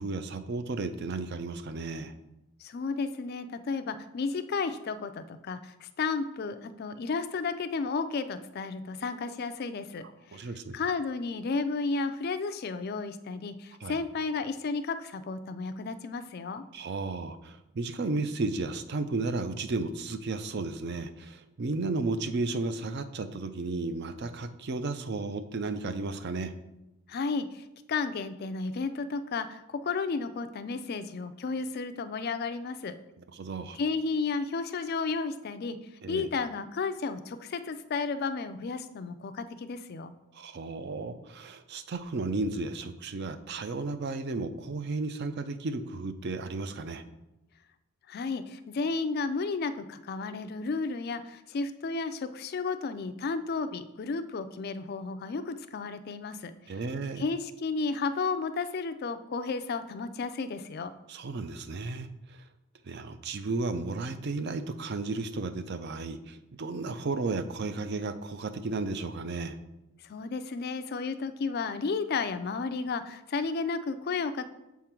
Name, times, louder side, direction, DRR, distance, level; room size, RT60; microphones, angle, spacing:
voice 1, 0.0-2.1 10.3-10.8 13.8-14.0 16.7-26.5 33.3-33.8 36.0-36.3 40.3-47.0 56.7-57.3 61.1-62.4 62.8-69.6, right 3 dB, 45° right, 11 dB, 0.4 m, -34 dB
voice 2, 2.6-16.6 27.1-33.0 33.7-35.8 36.1-40.1 48.1-56.5 57.2-60.9 70.0-74.5, left 4 dB, 45° left, 10 dB, 0.3 m, -33 dB
7.1 x 3.7 x 4.4 m, 0.94 s
head